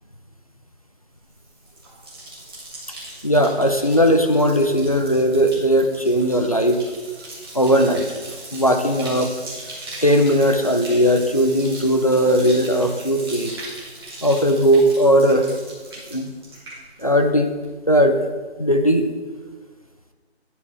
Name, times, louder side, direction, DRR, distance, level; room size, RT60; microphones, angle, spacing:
Bathtub (filling or washing), 1.3-17.4 17.6-18.2, right 2 dB, 20° right, 1.7 m, -39 dB
voice 1, 3.2-6.8 7.5-8.1 8.5-9.3 10.0-13.6 14.2-15.5 16.1-16.3 17.0-17.5 17.9-18.2 18.6-19.1, equal, 35° left, 5 dB, 0.5 m, -18 dB
9.9 x 4.8 x 4.7 m, 1.4 s
figure-of-eight pair, 165°, 33 cm